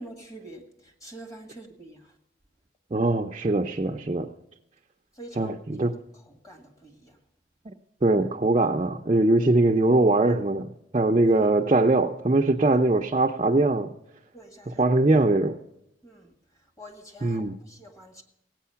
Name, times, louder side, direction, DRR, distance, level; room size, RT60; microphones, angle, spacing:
voice 1, 0.0-2.2 5.1-5.9 6.1-7.2 11.3-11.5 14.3-14.8 16.0-18.2, right 1 dB, 20° left, 4 dB, 1.8 m, -46 dB
voice 2, 2.9-4.3 5.4-5.9 7.7-7.8 8.0-13.9 14.8-15.6 17.2-17.6, right 2 dB, 30° right, 1 dB, 0.5 m, -22 dB
16.5 x 9.1 x 5.7 m, 0.88 s
head